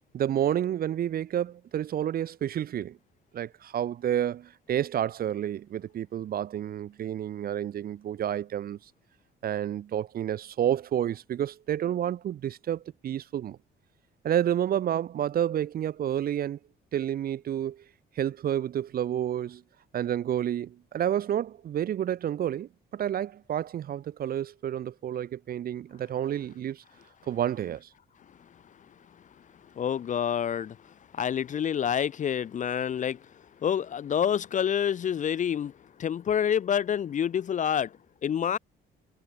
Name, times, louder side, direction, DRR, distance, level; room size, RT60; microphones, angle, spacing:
voice 1, 0.1-3.0 3.3-8.8 9.4-13.6 14.2-16.6 16.9-17.8 18.2-19.6 19.9-26.8 27.3-27.9, right 10 dB, 50° right, 0.5 m, -30 dB
voice 2, 29.8-30.8 31.1-33.2 33.6-35.7 36.0-37.9 38.2-38.6, left 8 dB, 40° left, 0.4 m, -27 dB
cardioid pair, 90°, 20 cm